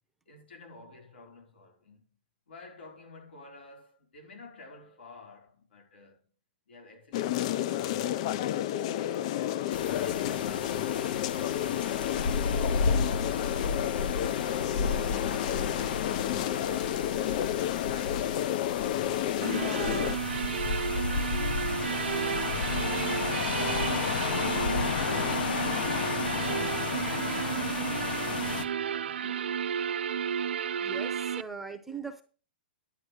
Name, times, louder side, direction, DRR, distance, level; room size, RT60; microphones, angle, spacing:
voice 1, 0.2-2.0 2.5-6.3 6.7-9.4 14.8-18.3 19.1-23.1 28.0-29.8, left 3 dB, 85° left, 4.8 m, -51 dB
sound 1, 7.1-20.2, left 12 dB, 40° left, 0.4 m, -31 dB
sound 2, 9.7-28.6, left 6 dB, 60° left, 1.0 m, -32 dB
sound 3, 19.4-31.4, right 8 dB, 85° right, 0.5 m, -32 dB
voice 2, 30.8-32.2, right 5 dB, 5° right, 0.8 m, -40 dB
11.0 x 8.3 x 4.9 m
hypercardioid pair, 160°, 6 cm